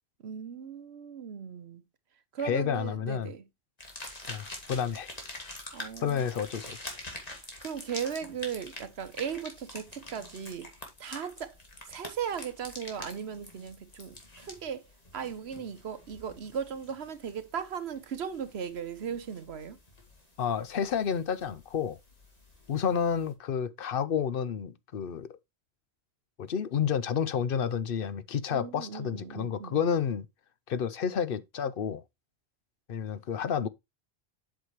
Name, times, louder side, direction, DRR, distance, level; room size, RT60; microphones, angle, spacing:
voice 1, 0.2-1.8 2.3-3.4 5.7-6.2 7.6-10.7 11.0-11.5 11.9-14.9 15.1-19.8 28.5-29.8, right 7 dB, 80° right, 1.2 m, -37 dB
voice 2, 2.4-3.3 4.3-5.1 6.0-6.9 20.4-22.0 22.7-25.4 26.4-30.3 30.7-32.0 32.9-33.7, left 7 dB, 60° left, 0.8 m, -30 dB
sound 1, 3.8-23.3, left 1 dB, 35° left, 2.2 m, -47 dB
8.1 x 6.3 x 3.0 m
omnidirectional pair, 1.1 m